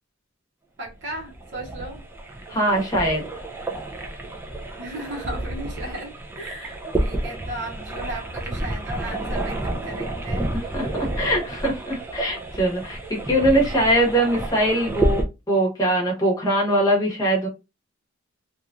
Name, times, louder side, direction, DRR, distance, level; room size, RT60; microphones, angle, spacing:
voice 1, 0.8-2.0 4.8-10.5, right 1 dB, 60° right, 0.9 m, -35 dB
sound 1, 0.9-15.2, right 1 dB, 10° right, 0.4 m, -30 dB
voice 2, 2.5-3.2 10.7-17.5, right 1 dB, 15° left, 1.0 m, -22 dB
2.9 x 2.4 x 2.4 m
head